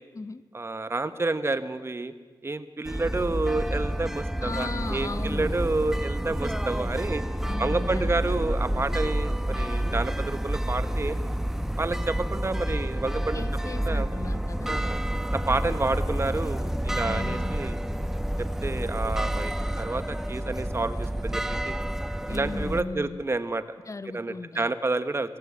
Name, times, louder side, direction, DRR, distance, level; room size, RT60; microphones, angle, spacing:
voice 1, 0.5-2.1 2.4-7.2 7.6-11.2 11.8-13.4 13.8-14.1 14.7-15.0 15.3-17.8 18.4-21.8 22.3-23.8 24.1-25.4, right 2 dB, 35° right, 12 dB, 1.2 m, -29 dB
sound 1, 2.8-22.8, right 1 dB, 5° right, 0.9 m, -29 dB
voice 2, 4.4-5.6 7.4-8.4 13.3-14.8 17.0-17.5 22.3-23.2 23.9-24.7, left 3 dB, 40° left, 14 dB, 0.8 m, -37 dB
23.5 x 17.5 x 8.7 m, 1.5 s
wide cardioid pair, 125°, 8 cm